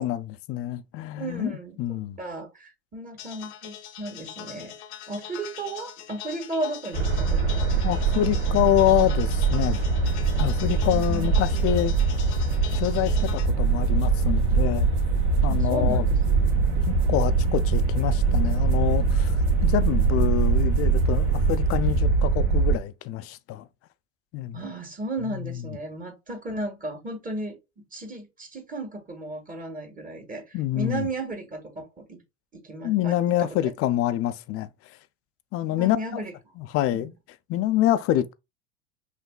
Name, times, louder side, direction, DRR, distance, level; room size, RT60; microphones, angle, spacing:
voice 1, 0.0-2.2 7.8-9.8 10.4-11.9 12.7-14.9 15.4-16.1 16.9-23.7 24.3-24.6 25.2-25.7 30.5-31.1 32.8-34.7 35.5-36.2 36.6-37.1 37.5-38.3, left 13 dB, 45° left, 0.5 m, -26 dB
voice 2, 1.1-1.8 2.2-4.7 5.1-8.3 10.9-11.3 15.5-17.1 24.5-27.6 27.9-32.2 32.5-33.7 35.7-36.3 36.9-37.1, right 2 dB, 25° right, 1.8 m, -35 dB
sound 1, 3.2-13.5, left 10 dB, 80° left, 0.9 m, -42 dB
sound 2, 6.9-22.8, right 4 dB, 65° right, 1.8 m, -23 dB
sound 3, 10.0-22.0, left 1 dB, 85° right, 1.7 m, -37 dB
5.7 x 2.8 x 2.3 m
hypercardioid pair, 95°, 33 cm